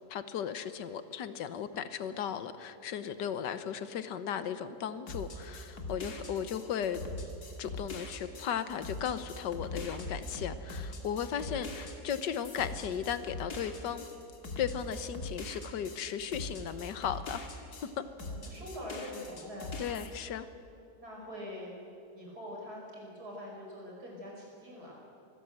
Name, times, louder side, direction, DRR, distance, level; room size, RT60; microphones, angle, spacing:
voice 1, 0.0-7.0 7.6-14.0 14.6-17.5 18.0-18.1 19.8-20.5, left 8 dB, 90° left, 12 dB, 1.6 m, -36 dB
sound 1, 5.1-17.9 18.2-20.1, left 2 dB, 65° left, 2.6 m, -42 dB
voice 2, 18.2-19.7 21.0-25.0, left 1 dB, 65° right, -2 dB, 5.8 m, -44 dB
23.5 x 17.0 x 7.9 m, 2.7 s
omnidirectional pair, 1.8 m